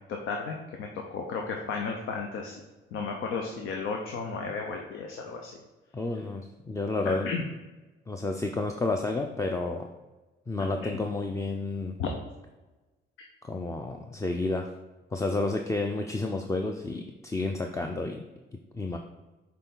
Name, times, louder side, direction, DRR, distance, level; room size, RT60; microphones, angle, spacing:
voice 1, 0.3-2.6 2.9-5.6 7.0-7.4 10.8-10.9 12.0-12.1, left 5 dB, 85° left, 2 dB, 0.7 m, -33 dB
voice 2, 5.9-7.3 8.1-9.9 10.5-12.0 13.4-14.7 15.1-18.2 18.5-19.0, left 2 dB, 15° left, 3 dB, 0.5 m, -30 dB
6.7 x 4.0 x 3.8 m, 1.2 s
cardioid pair, 90°, 20 cm